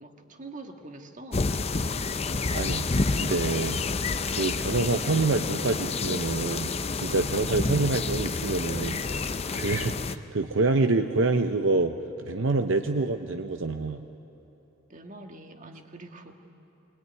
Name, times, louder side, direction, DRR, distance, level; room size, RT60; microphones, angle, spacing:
voice 1, 0.0-1.5 12.8-13.2 14.9-16.5, right 2 dB, 40° right, 4 dB, 1.6 m, -45 dB
sound 1, 1.3-10.2, left 4 dB, 30° left, 0.6 m, -29 dB
voice 2, 2.5-3.8 4.3-6.7 7.0-14.0, right 3 dB, 70° right, 6 dB, 0.8 m, -27 dB
23.0 x 21.5 x 9.6 m, 2.9 s
head